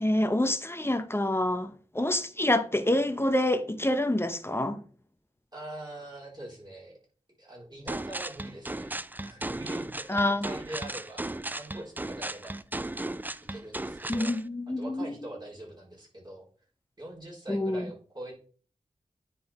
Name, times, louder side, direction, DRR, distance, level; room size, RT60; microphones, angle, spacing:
voice 1, 0.0-4.8 10.1-10.5 14.1-15.1 17.5-17.9, left 1 dB, 20° left, 0.7 m, -27 dB
voice 2, 5.5-7.0 7.4-8.9 9.2-12.5 13.5-14.3 14.8-16.4 17.0-18.3, right 1 dB, 30° right, 3.9 m, -43 dB
sound 1, 7.9-14.4, right 2 dB, 15° right, 0.4 m, -36 dB
9.7 x 3.8 x 4.2 m
wide cardioid pair, 60°, 13 cm